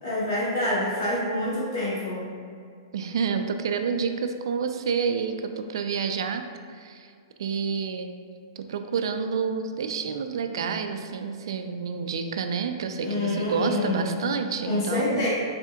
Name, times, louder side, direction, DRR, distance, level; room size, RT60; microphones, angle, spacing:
voice 1, 0.0-2.3 13.0-14.1 14.6-15.3, left 1 dB, 60° left, -8 dB, 1.5 m, -27 dB
voice 2, 2.9-6.4 6.7-7.1 7.4-8.1 8.6-15.3, right 6 dB, 75° right, 7 dB, 0.3 m, -29 dB
4.2 x 2.7 x 3.4 m, 2.2 s
hypercardioid pair, 165°, 3 cm